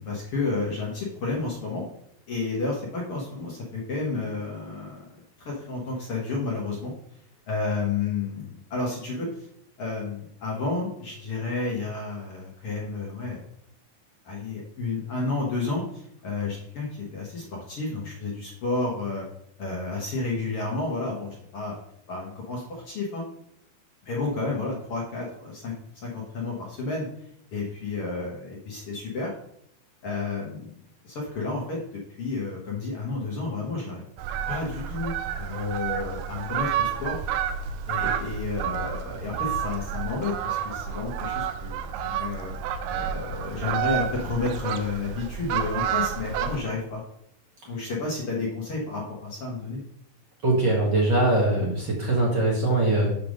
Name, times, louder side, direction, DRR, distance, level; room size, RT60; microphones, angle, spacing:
voice 1, 0.0-1.8 2.3-5.0 5.4-6.9 7.5-8.4 8.7-9.5 9.8-13.4 14.2-19.2 19.6-21.8 22.1-23.2 24.0-25.7 26.0-27.1 27.5-29.3 30.0-30.7 31.0-31.8 32.2-34.0 34.5-37.2 37.9-42.5 42.9-47.0 47.7-49.8, left 3 dB, 60° left, -3 dB, 1.5 m, -31 dB
Fowl, 34.2-46.6, right 8 dB, 85° right, 2.0 m, -30 dB
voice 2, 50.4-53.1, right 2 dB, 60° right, -3 dB, 1.1 m, -22 dB
7.7 x 3.4 x 6.3 m, 0.72 s
omnidirectional pair, 4.4 m